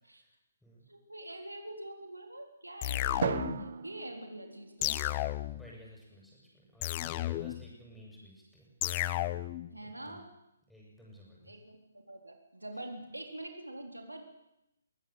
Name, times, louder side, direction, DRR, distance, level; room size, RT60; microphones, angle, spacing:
voice 1, 0.9-5.0 9.7-10.3 11.5-14.2, right 1 dB, 90° right, 4 dB, 3.9 m, -45 dB
sound 1, 2.8-3.7 4.8-5.7 6.8-7.7 8.8-9.7, left 16 dB, 30° left, 0.8 m, -33 dB
Drum, 3.2-5.5, right 7 dB, 50° right, 1.3 m, -37 dB
voice 2, 5.4-8.7 9.8-10.2 10.7-11.5, equal, ahead, -3 dB, 7.7 m, -54 dB
21.5 x 17.0 x 8.1 m, 0.86 s
figure-of-eight pair, 140°, 0 cm